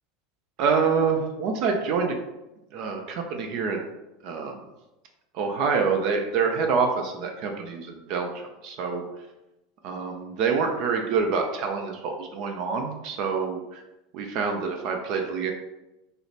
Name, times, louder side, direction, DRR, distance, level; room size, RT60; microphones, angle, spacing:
voice 1, 0.6-2.2 2.7-3.8 4.2-4.6 5.3-9.0 9.8-13.8 14.1-15.5, right 5 dB, 60° right, 3 dB, 0.5 m, -26 dB
3.2 x 2.0 x 3.9 m, 0.96 s
supercardioid pair, 125°, 0 cm